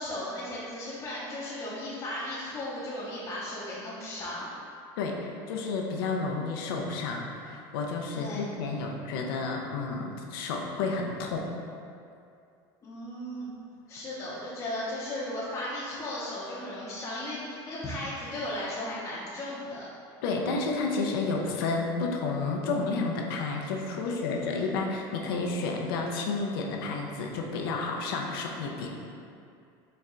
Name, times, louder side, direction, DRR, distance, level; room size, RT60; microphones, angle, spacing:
voice 1, 0.0-4.5 8.1-8.4 12.8-13.5 13.9-19.8 24.0-24.7, left 1 dB, 30° left, -8 dB, 0.6 m, -36 dB
voice 2, 5.0-11.4 20.2-29.0, left 3 dB, 85° left, 0 dB, 0.5 m, -31 dB
4.1 x 2.2 x 3.6 m, 2.5 s
supercardioid pair, 120°, 12 cm